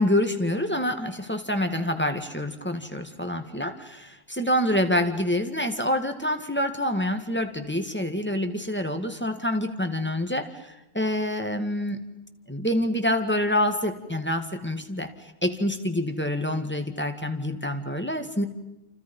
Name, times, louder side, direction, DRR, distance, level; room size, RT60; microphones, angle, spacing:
voice 1, 0.0-12.0 12.5-18.4, left 1 dB, 5° left, 6 dB, 1.9 m, -27 dB
29.0 x 28.5 x 5.5 m, 0.93 s
omnidirectional pair, 1.9 m